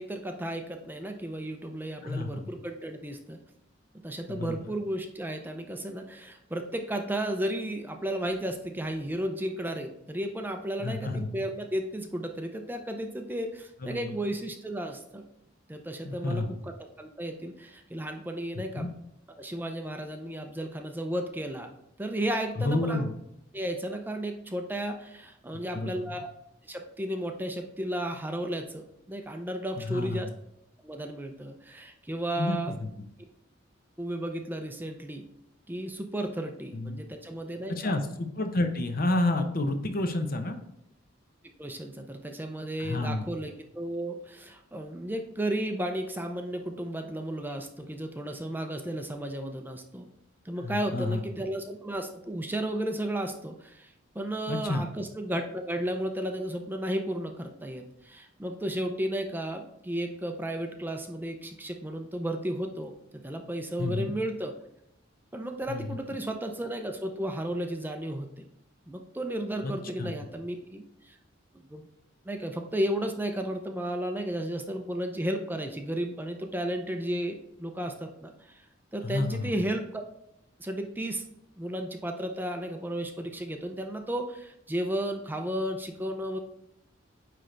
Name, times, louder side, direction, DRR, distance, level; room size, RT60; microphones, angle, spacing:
voice 1, 0.0-3.4 4.0-15.2 15.7-18.9 19.4-21.7 22.0-23.1 23.5-26.3 26.7-30.3 30.8-32.7 34.0-35.2 35.7-38.0 41.6-50.1 50.4-64.5 65.3-68.4 68.9-71.2 71.5-71.9 72.3-78.7 78.9-80.0 80.6-81.2 81.6-86.4, right 1 dB, 10° right, 5 dB, 0.5 m, -33 dB
voice 2, 2.0-2.5 4.3-4.5 10.8-11.4 13.8-14.1 16.0-16.5 18.6-18.9 22.6-23.1 25.7-26.1 29.9-30.2 32.4-32.9 36.7-37.0 37.7-40.6 42.8-43.3 50.6-51.2 54.5-54.9 63.8-64.1 65.7-66.0 69.6-69.7 70.0-70.1 79.0-79.5, left 2 dB, 50° left, 7 dB, 0.7 m, -30 dB
9.1 x 3.3 x 3.8 m, 0.79 s
head